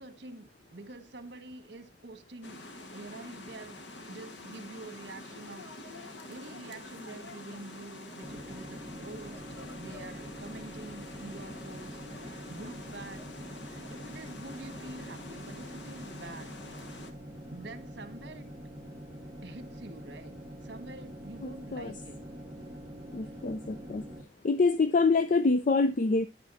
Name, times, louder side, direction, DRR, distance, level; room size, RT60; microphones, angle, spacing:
voice 1, 0.0-2.6 2.9-3.8 4.1-9.4 9.7-16.6 17.5-18.5 19.4-22.2 23.2-23.3, right 2 dB, 65° right, 1.4 m, -47 dB
sound 1, 2.4-17.1, left 2 dB, 75° left, 1.4 m, -46 dB
sound 2, 8.2-24.2, equal, 5° right, 1.8 m, -45 dB
voice 2, 21.4-21.9 23.1-24.0 24.4-26.3, left 3 dB, 45° left, 0.4 m, -26 dB
10.5 x 8.8 x 2.6 m
head